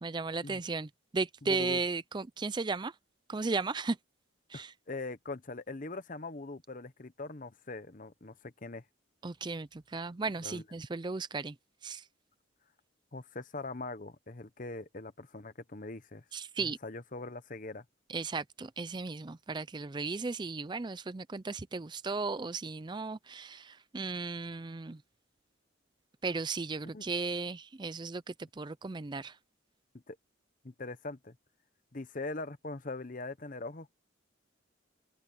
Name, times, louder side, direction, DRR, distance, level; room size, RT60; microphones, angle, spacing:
voice 1, 0.0-2.9 3.3-4.0 4.5-4.7 9.2-11.5 11.8-12.0 16.3-16.8 18.1-25.0 26.2-28.2 28.6-29.3, right 4 dB, 20° right, 0.4 m, -35 dB
voice 2, 1.4-1.8 4.5-8.8 10.4-10.6 13.1-16.2 16.6-17.8 26.9-27.0 30.1-30.2 30.6-31.4 31.9-33.9, left 3 dB, 40° left, 1.0 m, -42 dB
head